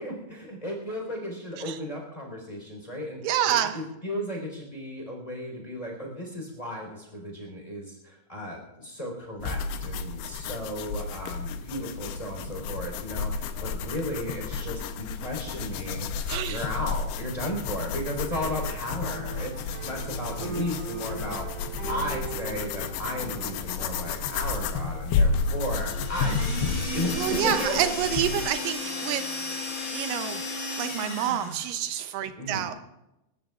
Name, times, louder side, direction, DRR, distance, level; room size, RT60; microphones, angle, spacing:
voice 1, 0.0-19.5 19.8-21.5 21.9-27.8 32.3-32.8, equal, 10° left, 0 dB, 3.5 m, -35 dB
voice 2, 3.2-3.8 16.3-16.6 27.1-29.2 29.9-30.4 30.8-32.7, right 10 dB, 80° right, 9 dB, 2.0 m, -28 dB
sound 1, 9.4-28.5, left 5 dB, 80° left, 2.7 m, -32 dB
sound 2, 18.3-29.5, right 5 dB, 60° right, 3.0 m, -42 dB
sound 3, 25.8-31.7, left 2 dB, 25° left, 2.3 m, -34 dB
28.0 x 14.0 x 2.4 m, 0.92 s
omnidirectional pair, 4.8 m